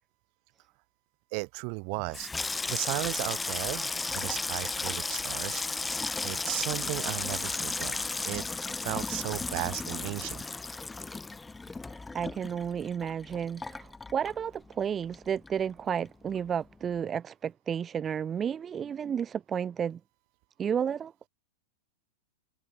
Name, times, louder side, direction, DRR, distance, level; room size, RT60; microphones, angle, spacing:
voice 1, 1.3-2.3 2.7-5.6 6.2-8.4 8.8-10.4, right 40 dB or more, 35° right, 3.0 m, -35 dB
Water tap faucet / Sink (filling or washing), 2.0-14.8 15.1-15.8 16.1-16.4, left 3 dB, 5° left, 1.0 m, -34 dB
voice 2, 12.1-20.0 20.6-21.1, right 8 dB, 15° right, 1.0 m, -32 dB
supercardioid pair, 170°, 0 cm